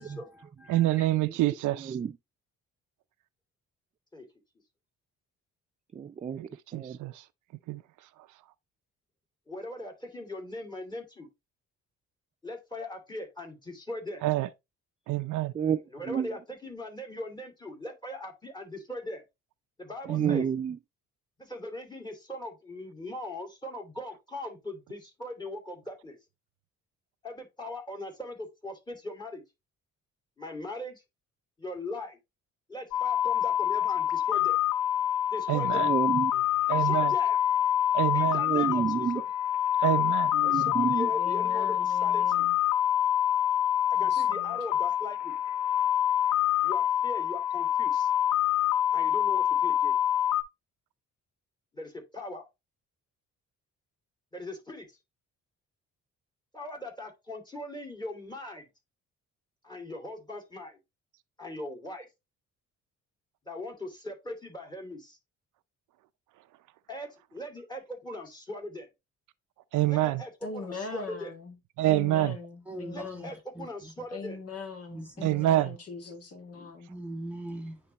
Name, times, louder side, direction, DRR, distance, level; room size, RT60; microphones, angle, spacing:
voice 1, 0.0-1.1 72.7-74.1 74.9-75.4 76.9-77.8, right 1 dB, 5° right, 2.2 m, -42 dB
voice 2, 0.7-2.0 6.4-6.5 6.7-7.3 7.7-7.8 14.2-14.5 15.1-15.5 20.1-20.4 35.5-35.9 36.7-37.2 37.9-38.4 39.8-40.3 69.7-70.2 71.8-72.4 75.2-75.8, right 15 dB, 80° right, 0.5 m, -26 dB
voice 3, 1.8-2.1 5.9-7.0 15.5-16.3 20.1-20.8 35.7-36.4 38.3-39.2 40.3-41.1, right 7 dB, 25° right, 0.3 m, -30 dB
voice 4, 9.5-11.3 12.4-14.2 15.9-19.2 19.8-20.5 21.4-26.2 27.2-29.4 30.4-31.0 31.6-32.2 32.7-34.6 35.3-35.9 36.7-37.4 38.1-39.3 40.4-42.5 43.9-45.4 46.6-48.1 48.9-50.0 51.7-52.4 54.3-55.0 56.5-58.7 59.6-60.8 61.4-62.1 63.5-65.2 66.9-68.9 69.8-71.3 72.9-74.4 76.5-76.7, left 1 dB, 15° left, 2.6 m, -40 dB
sound 1, 32.9-50.4, left 11 dB, 80° left, 0.7 m, -26 dB
voice 5, 41.1-42.6 44.0-44.6 70.4-73.3 74.1-76.9, left 4 dB, 50° left, 1.8 m, -41 dB
9.6 x 3.4 x 2.9 m
cardioid pair, 90°, 30 cm